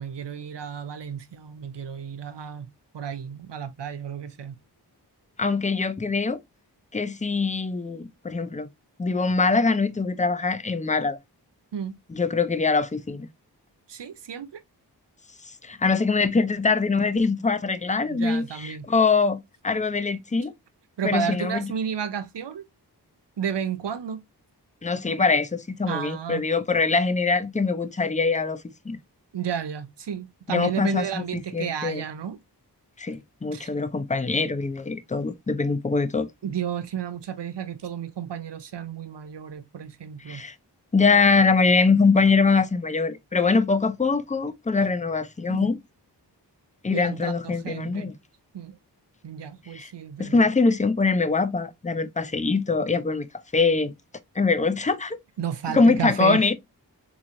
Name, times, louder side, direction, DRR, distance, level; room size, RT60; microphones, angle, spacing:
voice 1, 0.0-4.6 11.7-12.0 13.9-14.6 18.1-18.9 21.0-22.6 23.4-24.2 25.9-26.4 29.3-32.4 33.5-33.7 36.4-40.4 45.5-45.6 46.9-48.1 48.5-48.7 49.2-50.4 55.4-56.4, right 8 dB, 80° right, 0.7 m, -32 dB
voice 2, 5.4-6.4 6.9-8.7 9.0-11.2 12.1-13.3 15.4-20.5 21.0-21.7 24.8-29.0 30.5-31.2 31.5-32.0 33.0-36.3 40.3-40.6 40.9-45.8 46.8-48.1 49.7-49.9 50.2-53.9 54.4-55.2 55.7-56.5, left 4 dB, 20° left, 0.4 m, -23 dB
3.7 x 3.1 x 2.5 m
wide cardioid pair, 45°, 41 cm